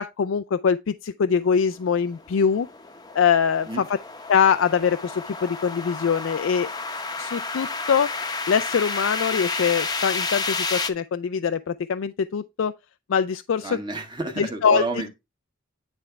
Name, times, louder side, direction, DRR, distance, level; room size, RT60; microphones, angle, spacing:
voice 1, 0.0-2.7 3.1-3.8 4.3-6.7 7.2-8.1 8.5-12.7 13.1-13.7 14.4-14.8, left 6 dB, 75° left, 0.4 m, -23 dB
sound 1, 1.8-10.9, left 4 dB, 20° left, 0.8 m, -31 dB
voice 2, 13.6-15.1, right 3 dB, 25° right, 1.4 m, -30 dB
9.8 x 3.5 x 4.5 m
head